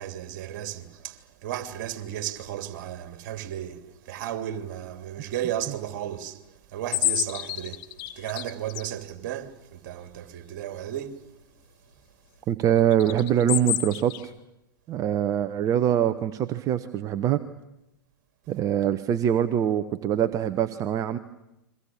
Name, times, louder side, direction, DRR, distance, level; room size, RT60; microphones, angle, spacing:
voice 1, 0.0-7.9 8.1-11.2, right 11 dB, 50° right, 3.0 m, -34 dB
sound 1, 6.9-8.9 12.9-14.3, left 15 dB, 40° left, 1.5 m, -28 dB
voice 2, 12.5-14.3 14.9-17.4 18.5-21.2, right 10 dB, 30° right, 1.1 m, -24 dB
30.0 x 24.0 x 7.3 m
figure-of-eight pair, 105°, 12 cm